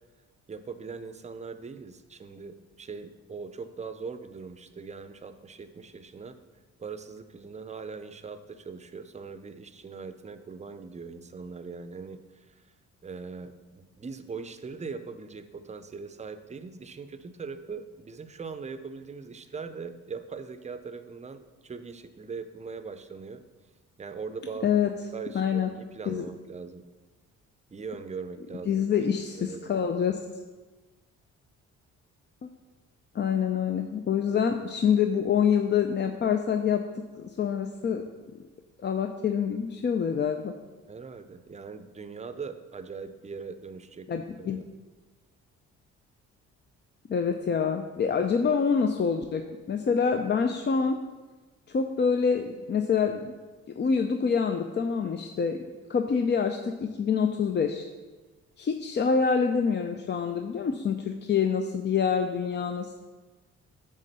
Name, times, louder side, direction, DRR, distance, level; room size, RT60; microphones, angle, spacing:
voice 1, 0.5-6.4 6.8-12.5 13.0-23.4 24.0-24.8 25.1-26.8 27.7-28.8 29.3-29.9 40.9-44.7, right 5 dB, 25° right, 10 dB, 0.6 m, -41 dB
voice 2, 25.3-25.7 26.1-26.2 28.7-30.2 32.4-32.5 33.1-36.8 37.2-38.0 38.8-40.6 44.1-44.6 47.1-51.0 51.7-53.3 53.8-55.6 55.9-57.9 58.6-62.9, left 6 dB, 35° left, 5 dB, 0.5 m, -26 dB
8.2 x 3.7 x 6.7 m, 1.2 s
cardioid pair, 90°, 30 cm